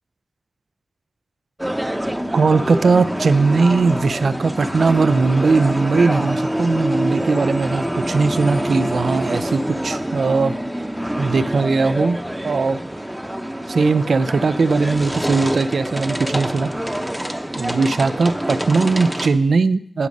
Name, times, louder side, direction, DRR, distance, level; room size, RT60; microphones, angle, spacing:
sound 1, 1.6-19.3, equal, 10° right, 0.8 m, -26 dB
voice 1, 2.3-10.6 11.2-12.2 12.4-12.8 13.7-16.7 17.6-20.1, right 4 dB, 80° right, 13 dB, 0.4 m, -19 dB
11.5 x 5.2 x 5.2 m, 0.67 s
cardioid pair, 45°, 0 cm